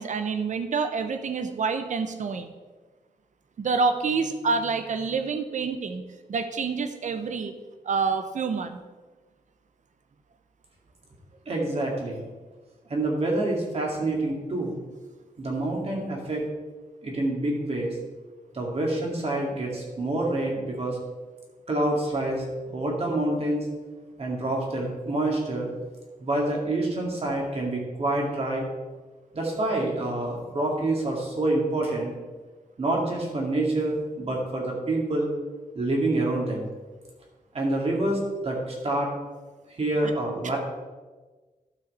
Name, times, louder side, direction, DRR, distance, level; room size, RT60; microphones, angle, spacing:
voice 1, 0.0-2.5 3.6-6.0 6.3-7.5 7.8-8.8 40.0-40.1, right 4 dB, 60° right, 9 dB, 0.9 m, -27 dB
voice 2, 11.5-12.2 12.9-14.7 15.4-16.5 17.0-18.0 18.5-21.0 21.7-23.7 24.2-25.7 26.2-28.7 29.3-32.1 32.8-35.3 35.7-36.7 37.5-39.1 39.8-40.6, right 2 dB, 45° right, -1 dB, 2.2 m, -27 dB
12.0 x 5.9 x 4.2 m, 1.3 s
wide cardioid pair, 125°, 14 cm